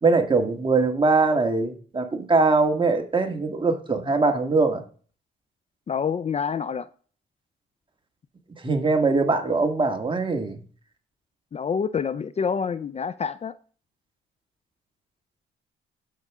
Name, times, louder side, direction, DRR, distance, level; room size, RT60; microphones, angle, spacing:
voice 1, 0.0-4.8 8.6-10.6, right 3 dB, 25° right, 1.9 m, -22 dB
voice 2, 5.9-6.9 11.5-13.6, left 6 dB, 35° left, 0.5 m, -27 dB
12.0 x 6.6 x 3.7 m
cardioid pair, 90°, 20 cm